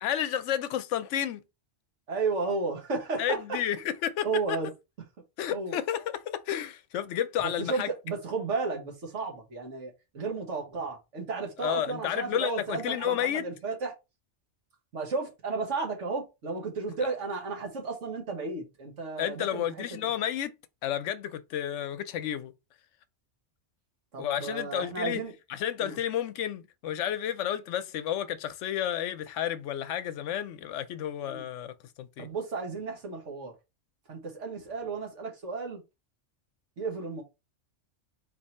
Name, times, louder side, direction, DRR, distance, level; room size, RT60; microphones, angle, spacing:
voice 1, 0.0-1.4 3.2-4.6 5.4-7.9 11.6-13.5 19.2-20.5 20.8-22.5 24.2-25.2 25.5-32.3, left 10 dB, 85° left, 0.9 m, -31 dB
voice 2, 2.1-3.4 4.2-4.7 5.5-5.8 7.4-13.9 14.9-20.1 24.1-25.3 25.8-26.0 31.3-31.4 32.2-33.5 34.1-35.8 36.8-37.2, right 4 dB, 85° right, 1.7 m, -33 dB
4.0 x 2.7 x 4.2 m
omnidirectional pair, 1.2 m